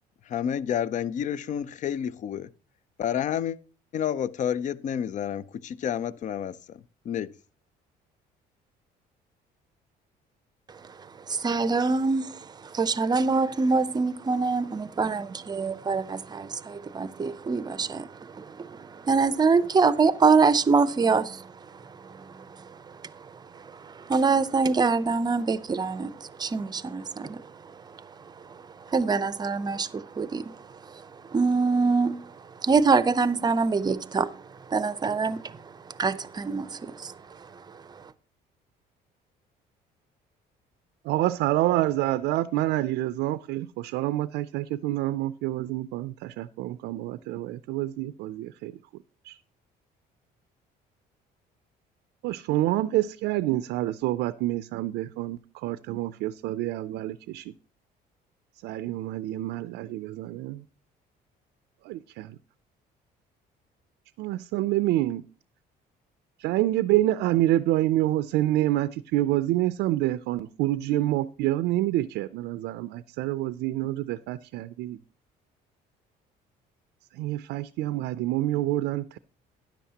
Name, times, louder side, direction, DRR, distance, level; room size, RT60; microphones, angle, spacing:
voice 1, 0.3-2.5 3.0-3.6 3.9-7.3, left 9 dB, 45° left, 0.5 m, -30 dB
voice 2, 11.3-12.2 12.8-38.0, right 4 dB, 25° right, 0.6 m, -26 dB
voice 3, 41.0-48.8 49.2-49.4 52.2-57.5 58.6-60.6 61.8-62.4 64.2-65.2 66.4-75.0 77.1-79.2, right 15 dB, 85° right, 0.4 m, -27 dB
13.0 x 10.0 x 2.8 m
cardioid pair, 110°, 17 cm